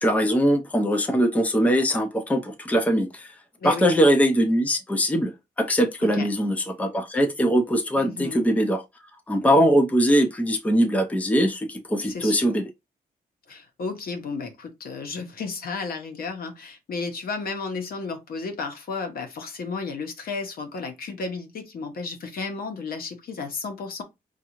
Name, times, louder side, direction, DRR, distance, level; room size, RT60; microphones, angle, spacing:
voice 1, 0.0-3.3 3.6-5.3 5.6-8.8 9.3-12.6, equal, 10° left, 0.5 m, -21 dB
voice 2, 8.0-8.5 12.1-12.5 13.5-24.0, left 4 dB, 70° left, 0.9 m, -33 dB
5.1 x 2.4 x 2.9 m
wide cardioid pair, 165°, 16 cm